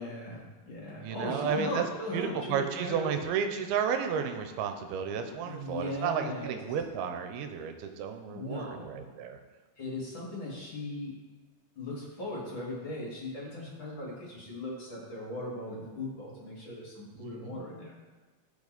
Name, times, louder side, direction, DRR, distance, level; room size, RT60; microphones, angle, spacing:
voice 1, 0.0-3.1 5.4-6.6 8.3-9.0 9.8-11.2 11.8-17.9, left 1 dB, 40° left, -5 dB, 2.2 m, -38 dB
voice 2, 1.0-1.8 2.1-9.4 17.2-17.7, right 7 dB, 90° right, 6 dB, 2.6 m, -32 dB
15.5 x 5.3 x 4.0 m, 1.3 s
omnidirectional pair, 4.5 m